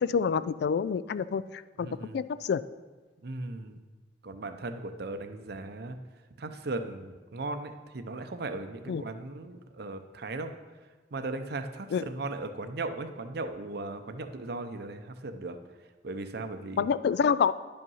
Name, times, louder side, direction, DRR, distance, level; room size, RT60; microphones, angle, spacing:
voice 1, 0.0-2.6 8.9-9.0 11.9-12.0 16.8-17.5, left 6 dB, 65° left, 16 dB, 0.3 m, -27 dB
voice 2, 1.8-2.2 3.2-3.8 4.2-6.0 6.4-10.5 11.1-15.6 16.0-16.9, right 2 dB, 65° right, 8 dB, 0.7 m, -37 dB
10.5 x 5.4 x 5.5 m, 1.3 s
head